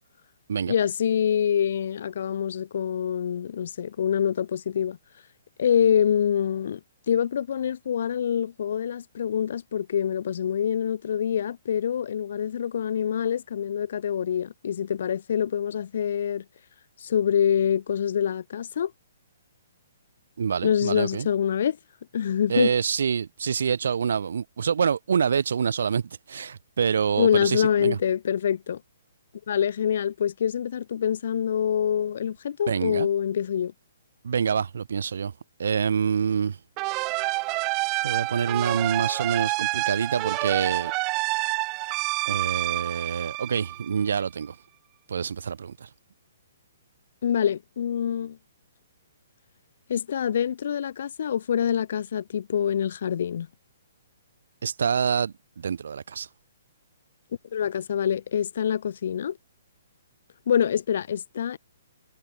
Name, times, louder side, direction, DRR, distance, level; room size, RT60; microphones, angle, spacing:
voice 1, 0.7-5.0 5.6-6.8 7.1-16.4 17.0-18.9 20.6-21.8 22.1-22.7 27.2-28.8 29.5-33.7 47.2-48.4 49.9-53.5 57.5-59.4 60.5-61.6, left 8 dB, 60° left, 0.8 m, -25 dB
voice 2, 20.4-21.3 22.5-26.0 26.3-28.0 32.7-33.1 34.2-35.3 35.6-36.6 38.0-40.9 42.3-44.5 45.1-45.9 54.6-56.3, right 6 dB, 70° right, 0.6 m, -26 dB
sound 1, 36.8-44.2, right 27 dB, 30° right, 0.9 m, -28 dB
hypercardioid pair, 140°, 0 cm